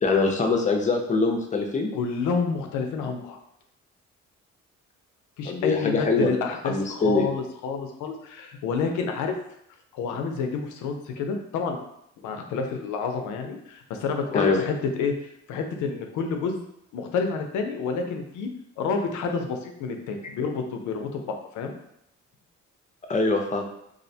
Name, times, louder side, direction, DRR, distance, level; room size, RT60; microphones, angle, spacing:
voice 1, 0.0-1.9 5.4-6.3 6.6-7.3 14.3-14.6 23.1-23.7, left 3 dB, 25° left, 2 dB, 0.4 m, -23 dB
voice 2, 1.9-3.4 5.4-9.4 9.9-11.8 12.2-15.1 15.5-16.6 16.9-18.5 18.8-21.7, left 5 dB, 80° left, 4 dB, 0.5 m, -29 dB
2.4 x 2.1 x 2.6 m, 0.76 s
cardioid pair, 90°, 30 cm